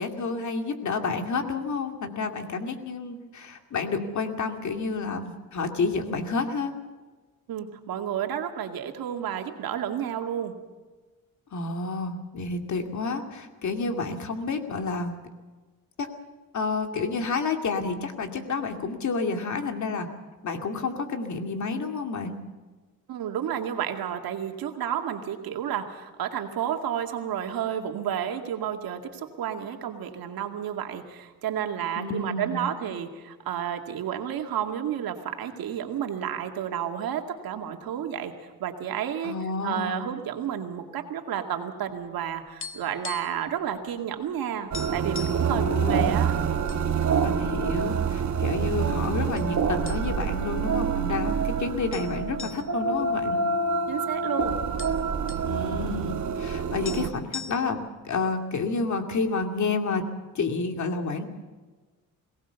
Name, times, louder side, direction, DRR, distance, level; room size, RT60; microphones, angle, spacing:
voice 1, 0.0-6.7 11.5-15.2 16.0-16.1 16.5-20.1 20.4-22.4 32.0-32.7 39.2-40.1 45.5-46.3 47.2-53.4 55.4-60.0 60.3-61.2, left 4 dB, 55° left, 5 dB, 2.5 m, -30 dB
voice 2, 7.5-10.5 23.1-38.3 38.6-39.4 39.6-46.3 53.9-54.6, right 9 dB, 90° right, 4 dB, 2.3 m, -31 dB
sound 1, 42.0-43.5 43.7-43.9 44.3-44.4 44.7-45.5 46.2-46.8 47.2-47.3 48.0-48.7 49.4-49.5 49.9-50.4 50.7-50.8 51.9-54.0 54.3-54.4 54.6-55.5 56.5-56.6 56.8-57.9, left 5 dB, 35° left, 1.3 m, -40 dB
sound 2, 44.7-57.1, right 5 dB, 55° right, 1.3 m, -27 dB
22.0 x 18.0 x 7.0 m, 1.3 s
cardioid pair, 115°, 34 cm